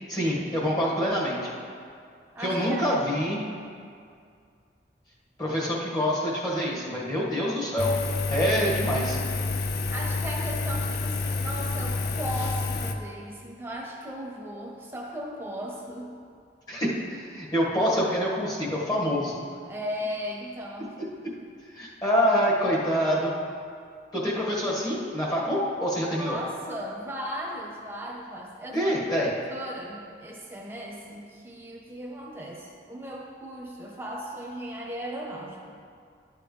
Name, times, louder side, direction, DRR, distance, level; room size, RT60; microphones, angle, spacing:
voice 1, 0.1-1.5 2.4-3.4 5.4-7.9 8.3-9.2 16.7-19.4 21.8-23.3 24.1-26.3 28.7-29.3, equal, 20° left, -6 dB, 1.7 m, -26 dB
voice 2, 2.3-2.8 9.9-16.1 19.6-20.9 26.1-35.8, equal, 10° right, -2 dB, 1.1 m, -37 dB
Engine, 7.8-12.9, left 3 dB, 55° left, 0.5 m, -29 dB
11.0 x 7.8 x 3.3 m, 2.3 s
head